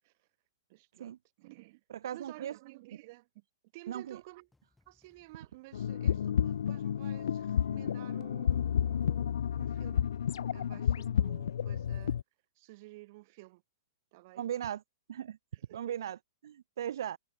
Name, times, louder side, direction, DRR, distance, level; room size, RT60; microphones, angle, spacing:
voice 1, 0.7-1.8 2.1-3.4 3.7-4.5 4.9-10.1 10.5-12.2 12.6-13.6 14.1-14.5 15.5-16.0, right 22 dB, 40° right, 5.4 m, -53 dB
voice 2, 1.9-2.5 3.9-4.2 14.4-14.8 15.1-15.4 15.7-16.2 16.4-17.2, right 10 dB, 65° right, 0.6 m, -37 dB
sound 1, 4.1-10.5, left 2 dB, 5° left, 5.9 m, -74 dB
sound 2, 5.7-12.2, left 9 dB, 75° left, 0.6 m, -31 dB
hypercardioid pair, 160°, 2 cm